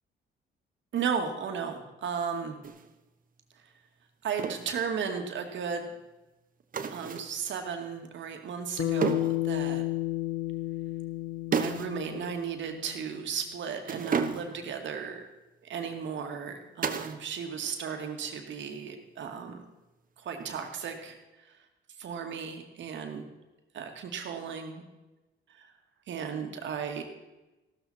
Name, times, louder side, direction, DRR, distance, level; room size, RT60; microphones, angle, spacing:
voice 1, 0.9-2.6 4.2-5.9 6.9-9.8 11.5-15.2 15.7-19.6 20.2-21.2 21.4-21.5 22.0-23.2 23.7-24.8 25.5-25.7 26.1-27.0, right 6 dB, 70° right, 4 dB, 2.1 m, -35 dB
sound 1, 2.6-2.9 4.4-4.7 6.7-7.4 9.0-9.4 11.5-12.0 12.2-12.4 13.8-14.7 16.8-17.3 17.5-18.1 20.4-20.9, right 6 dB, 45° right, 1.1 m, -32 dB
Bass guitar, 8.8-13.2, left 15 dB, 60° left, 1.1 m, -32 dB
14.5 x 13.0 x 4.4 m, 1.1 s
cardioid pair, 90°, 20 cm